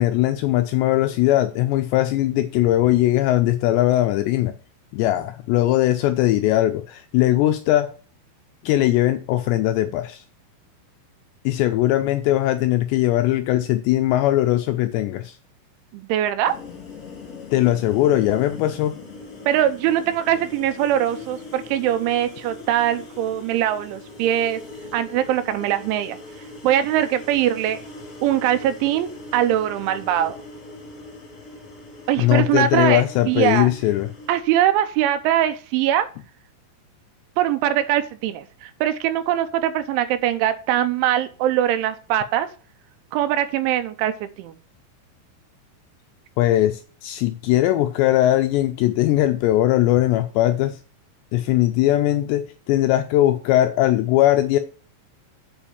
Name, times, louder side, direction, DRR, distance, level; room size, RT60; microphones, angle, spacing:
voice 1, 0.0-4.5 4.9-8.0 8.6-10.2 11.5-15.4 17.5-18.9 32.2-34.1 46.4-50.8 51.3-54.6, left 14 dB, 85° left, 2.5 m, -20 dB
voice 2, 15.9-16.5 19.5-24.6 24.9-26.2 26.6-27.8 28.2-30.4 32.1-33.7 34.3-36.1 37.4-42.5 43.1-44.5, right 11 dB, 80° right, 3.2 m, -22 dB
sound 1, 16.4-34.4, left 3 dB, 30° left, 1.9 m, -40 dB
8.8 x 4.9 x 7.1 m
omnidirectional pair, 5.6 m